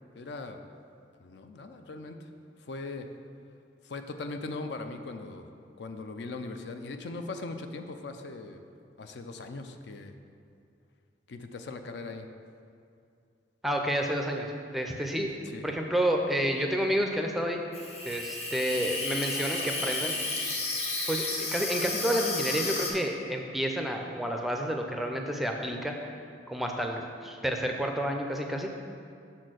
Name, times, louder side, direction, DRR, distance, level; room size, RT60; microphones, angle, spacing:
voice 1, 0.1-0.6 1.2-2.2 2.6-3.1 3.8-5.5 5.8-8.6 9.0-10.1 11.3-12.3 15.5-15.7, left 3 dB, 70° left, 7 dB, 0.4 m, -39 dB
voice 2, 13.6-15.3 15.6-17.6 18.0-20.1 21.1-26.1 26.5-28.7, equal, ahead, 2 dB, 0.4 m, -30 dB
Water tap faucet / Sink (filling or washing), 17.7-22.9, left 3 dB, 35° left, 0.8 m, -32 dB
6.2 x 4.3 x 6.3 m, 2.4 s
head